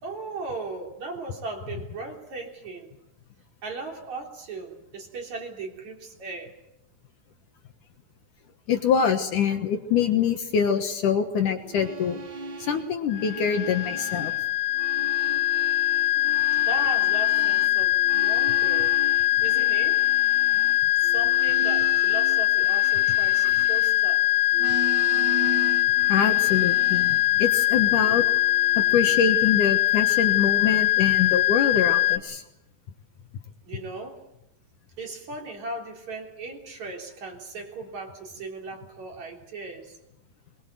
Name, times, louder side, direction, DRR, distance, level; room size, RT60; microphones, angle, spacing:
voice 1, 0.0-2.9 3.6-6.6 16.7-19.0 19.4-20.1 21.0-24.2 33.7-34.3 35.0-40.0, right 3 dB, 50° right, 1 dB, 4.6 m, -37 dB
voice 2, 8.7-12.2 12.6-14.3 26.1-28.3 28.8-32.4, left 7 dB, 65° left, 6 dB, 2.6 m, -24 dB
sound 1, 11.6-14.4 14.7-24.2 24.5-27.3 28.0-29.2, right 2 dB, 75° right, 1.0 m, -38 dB
sound 2, 13.1-32.2, left 15 dB, 80° left, 2.8 m, -22 dB
22.5 x 21.5 x 7.7 m, 0.88 s
omnidirectional pair, 4.3 m